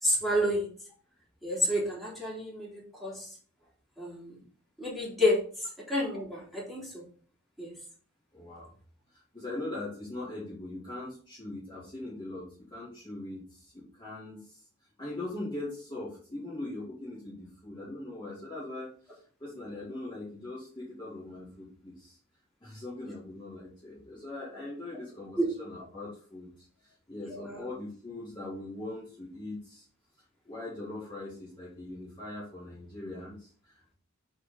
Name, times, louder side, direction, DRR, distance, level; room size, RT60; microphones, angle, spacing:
voice 1, 0.0-0.7 1.4-3.3 4.0-4.4 4.8-7.0 7.6-7.7 25.4-25.5 27.3-27.6, left 1 dB, ahead, -7 dB, 3.6 m, -30 dB
voice 2, 8.3-8.7 9.1-14.7 15.0-22.2 22.6-29.9 30.4-33.9, left 2 dB, 20° left, -8 dB, 2.5 m, -41 dB
8.8 x 4.5 x 4.2 m, 0.43 s
head